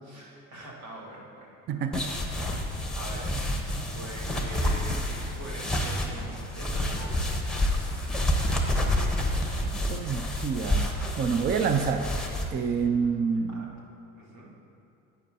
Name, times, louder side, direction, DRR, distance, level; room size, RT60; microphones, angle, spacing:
voice 1, 0.0-1.8 2.2-2.6 2.9-3.3 3.9-7.6 13.5-13.8 14.2-14.6, right 1 dB, 75° right, -4 dB, 1.9 m, -44 dB
voice 2, 1.7-2.1 9.5-12.2 12.5-13.7, right 6 dB, 25° right, 8 dB, 0.5 m, -28 dB
sound 1, 1.9-12.4, left 1 dB, ahead, 1.0 m, -29 dB
11.5 x 8.5 x 2.7 m, 2.9 s
hypercardioid pair, 70°, 43 cm